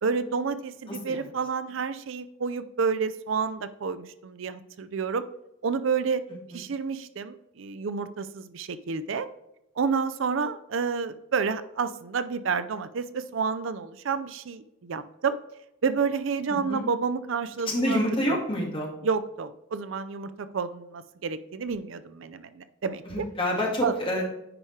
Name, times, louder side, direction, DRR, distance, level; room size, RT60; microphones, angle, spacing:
voice 1, 0.0-5.2 5.6-6.2 6.5-9.3 9.8-15.4 15.8-18.4 19.0-23.3 23.8-23.9, right 5 dB, 65° right, 12 dB, 0.5 m, -29 dB
voice 2, 0.9-1.2 6.5-6.6 16.5-16.8 17.6-18.9 23.1-24.2, equal, 25° left, -1 dB, 2.0 m, -28 dB
9.7 x 4.9 x 3.2 m, 0.87 s
head